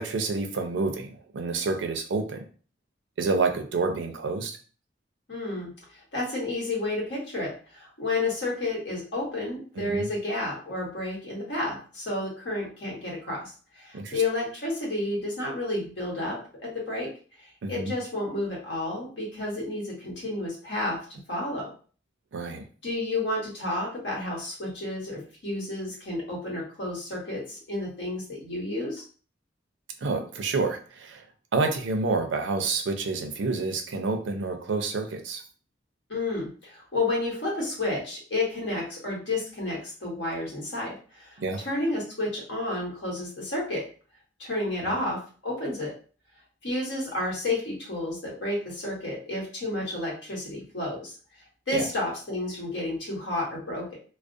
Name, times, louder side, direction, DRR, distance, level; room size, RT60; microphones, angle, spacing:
voice 1, 0.0-2.5 3.2-4.6 9.8-10.1 13.9-14.2 17.6-17.9 22.3-22.7 30.0-31.2 31.5-35.4 41.4-41.6 44.8-44.9 51.7-51.9, right 3 dB, 80° right, 5 dB, 0.4 m, -28 dB
voice 2, 5.3-5.7 6.1-17.1 17.4-21.0 21.3-21.7 22.8-29.0 36.1-43.8 44.4-45.9 46.6-51.1 51.7-54.0, left 2 dB, 70° left, -3 dB, 1.1 m, -31 dB
2.3 x 2.0 x 2.5 m, 0.39 s
head